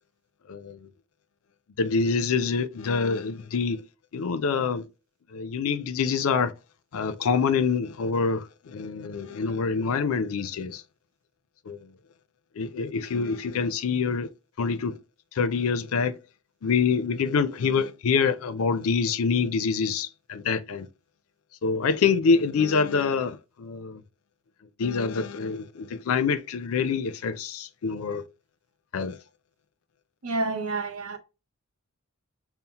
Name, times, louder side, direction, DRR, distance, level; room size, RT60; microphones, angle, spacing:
voice 1, 0.5-0.8 1.8-3.8 4.1-4.9 5.3-6.5 6.9-10.8 11.7-11.9 12.6-14.3 14.6-15.0 15.3-16.2 16.6-20.9 21.6-24.0 24.8-28.2 28.9-29.2, left 5 dB, 75° left, 0.4 m, -26 dB
voice 2, 30.2-31.2, right 3 dB, 85° right, 0.8 m, -29 dB
5.5 x 2.0 x 2.8 m
head